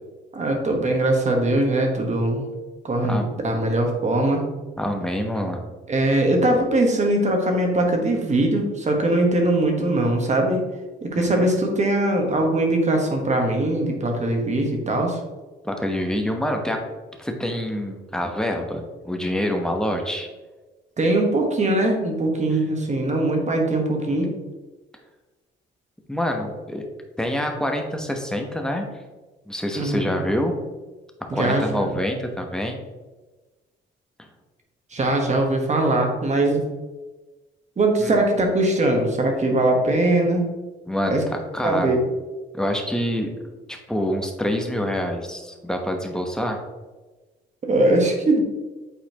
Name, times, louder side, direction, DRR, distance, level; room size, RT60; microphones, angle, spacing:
voice 1, 0.3-2.5 2.8-4.4 5.9-10.7 11.0-15.2 21.0-24.4 29.7-30.1 31.3-31.9 34.9-36.6 37.8-40.5 41.1-41.2 41.6-42.0 47.6-48.4, right 1 dB, 35° right, 2 dB, 1.4 m, -21 dB
voice 2, 4.8-5.7 11.1-11.5 15.6-16.8 17.2-20.3 26.1-26.9 27.2-28.9 29.5-30.6 31.3-32.8 38.0-38.1 40.9-42.0 42.5-43.3 43.7-46.6, equal, 5° left, 3 dB, 1.0 m, -26 dB
8.2 x 4.2 x 2.9 m, 1.2 s
cardioid pair, 90°, 20 cm